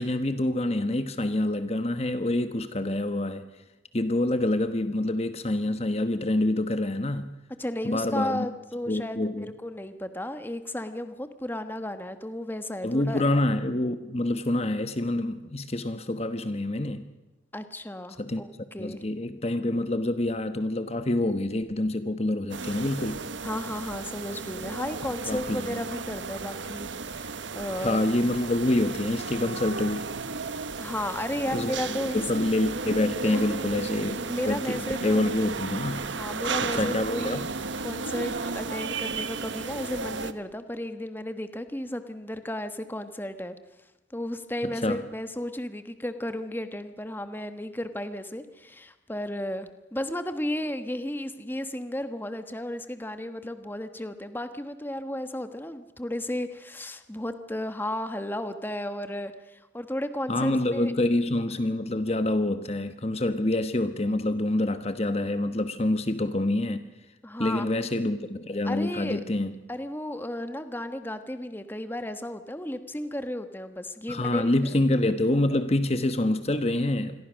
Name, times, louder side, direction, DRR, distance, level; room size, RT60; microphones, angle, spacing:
voice 1, 0.0-3.5 3.9-7.3 7.8-8.5 8.9-9.5 12.8-17.0 18.2-18.4 18.8-23.2 25.3-25.8 27.7-30.1 31.5-36.1 36.6-37.4 44.6-45.0 60.3-66.8 67.4-69.5 74.1-77.2, left 1 dB, 35° left, 1.1 m, -27 dB
voice 2, 7.6-13.2 17.5-19.0 23.4-28.1 30.8-32.2 33.2-33.4 34.3-35.2 36.0-37.4 37.8-43.6 44.1-60.9 67.2-67.7 68.6-69.2 69.7-74.5, left 1 dB, 10° left, 1.2 m, -34 dB
sound 1, 22.5-40.3, right 4 dB, 75° right, 1.2 m, -34 dB
27.5 x 22.0 x 6.4 m
head